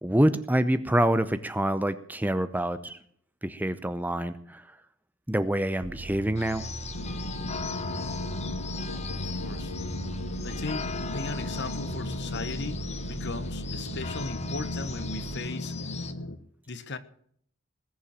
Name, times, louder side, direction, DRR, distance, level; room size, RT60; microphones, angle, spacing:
voice 1, 0.0-3.0 3.4-4.8 5.3-6.6, right 1 dB, 10° right, 12 dB, 0.7 m, -26 dB
sound 1, 5.8-15.4, right 3 dB, 50° right, 0.7 m, -40 dB
sound 2, 6.4-16.1, left 5 dB, 30° left, 1.1 m, -40 dB
sound 3, 6.9-16.4, left 2 dB, 80° left, 1.3 m, -36 dB
voice 2, 9.2-9.8 10.4-15.7 16.7-17.0, left 3 dB, 55° left, 13 dB, 1.2 m, -37 dB
20.0 x 7.2 x 7.4 m, 0.63 s
head